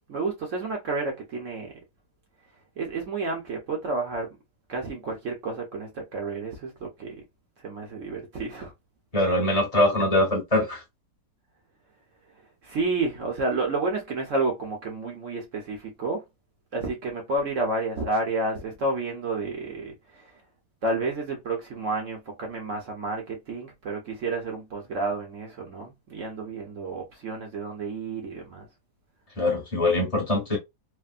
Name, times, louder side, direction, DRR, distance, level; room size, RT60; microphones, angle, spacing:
voice 1, 0.1-1.7 2.8-4.4 4.7-7.2 7.6-8.7 12.6-16.2 16.7-20.3 20.8-28.7, right 3 dB, 55° right, 0.9 m, -30 dB
voice 2, 9.1-10.8 29.4-30.6, left 1 dB, 25° left, 0.8 m, -23 dB
3.4 x 2.2 x 2.4 m
omnidirectional pair, 2.1 m